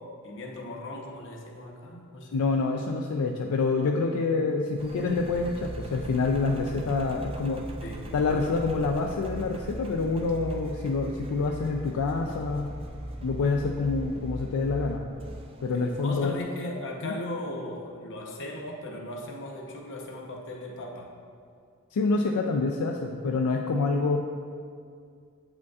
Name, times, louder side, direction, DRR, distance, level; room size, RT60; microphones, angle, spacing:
voice 1, 0.0-2.4 7.8-8.1 15.7-21.1, left 1 dB, 55° left, 0 dB, 0.8 m, -38 dB
voice 2, 2.3-7.7 8.1-12.7 13.2-15.0 15.6-16.3 17.0-17.1 21.9-24.2, left 3 dB, 80° left, 2 dB, 0.4 m, -27 dB
Engine, 4.8-16.4, right 1 dB, 25° right, 0.4 m, -39 dB
8.1 x 5.1 x 2.3 m, 2.2 s
head